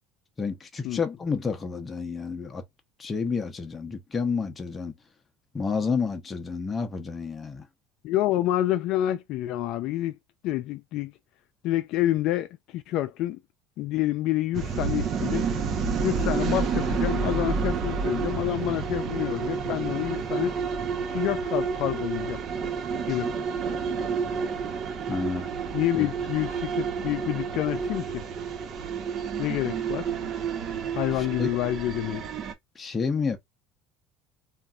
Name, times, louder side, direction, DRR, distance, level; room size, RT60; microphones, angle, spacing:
voice 1, 0.4-2.6 3.0-4.9 5.5-7.7 25.1-25.5 26.0-26.1 31.1-31.5 32.7-33.4, left 5 dB, 25° left, 0.7 m, -30 dB
voice 2, 8.0-10.2 10.4-11.1 11.6-13.4 13.8-15.5 16.0-20.5 21.1-22.4 23.1-23.3 25.7-28.2 29.4-30.1 31.0-32.2, left 14 dB, 60° left, 0.4 m, -28 dB
sound 1, 14.5-32.5, right 5 dB, 45° right, 0.7 m, -29 dB
3.2 x 2.5 x 2.4 m
supercardioid pair, 115°, 0 cm